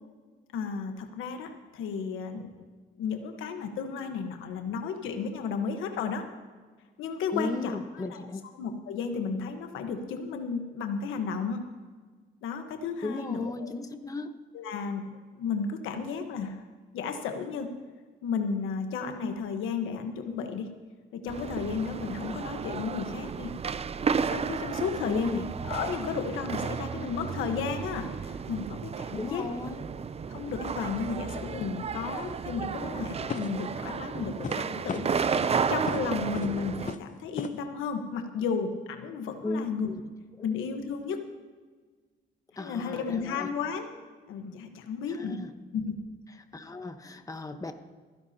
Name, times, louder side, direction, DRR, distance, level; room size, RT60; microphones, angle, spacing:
voice 1, 0.5-2.5 3.0-6.2 7.0-8.2 8.6-11.6 12.4-13.7 14.5-15.0 15.3-16.6 16.9-17.7 18.2-20.7 21.1-23.5 24.3-29.4 30.3-39.9 40.4-41.2 42.6-43.9 44.3-45.4 45.7-45.9, left 5 dB, 90° left, 6 dB, 1.3 m, -33 dB
voice 2, 7.3-8.4 13.0-14.3 25.1-25.5 29.1-29.8 39.4-40.0 40.4-40.5 42.6-43.5 45.1-45.5 46.5-47.7, left 2 dB, 15° left, 7 dB, 1.1 m, -35 dB
sound 1, 21.3-36.9, right 6 dB, 30° right, 0.5 m, -33 dB
sound 2, 32.1-32.3 33.3-33.7 34.4-34.6 34.9-35.5 35.9-36.0 36.3-36.6 36.9-37.1 37.4-37.5, left 6 dB, 40° left, 0.8 m, -35 dB
27.5 x 10.5 x 2.9 m, 1.5 s
cardioid pair, 90°, 20 cm